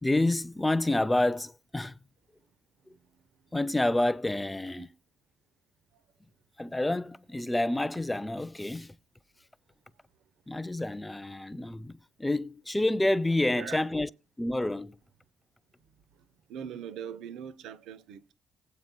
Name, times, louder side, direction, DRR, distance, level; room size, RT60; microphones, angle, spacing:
voice 1, 0.0-2.0 3.5-4.9 6.6-9.0 10.5-14.1 14.4-15.0, left 1 dB, 10° left, 0.5 m, -28 dB
voice 2, 16.1-18.3, right 8 dB, 85° right, 0.8 m, -41 dB
19.0 x 8.7 x 2.2 m
cardioid pair, 90°, 0 cm